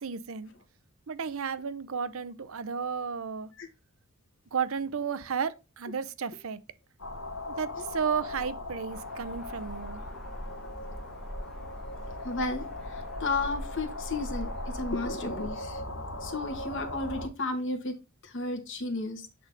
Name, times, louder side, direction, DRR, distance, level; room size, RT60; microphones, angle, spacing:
voice 1, 0.0-0.5 1.1-3.5 4.5-6.6 7.5-10.0, right 6 dB, 70° right, 0.6 m, -33 dB
sound 1, 7.0-17.3, left 1 dB, 80° left, 2.1 m, -39 dB
sound 2, 8.9-15.5, equal, ahead, 1.4 m, -42 dB
voice 2, 12.1-15.8 16.2-17.9 18.2-19.3, left 3 dB, 60° left, 1.6 m, -33 dB
8.5 x 4.0 x 3.6 m
head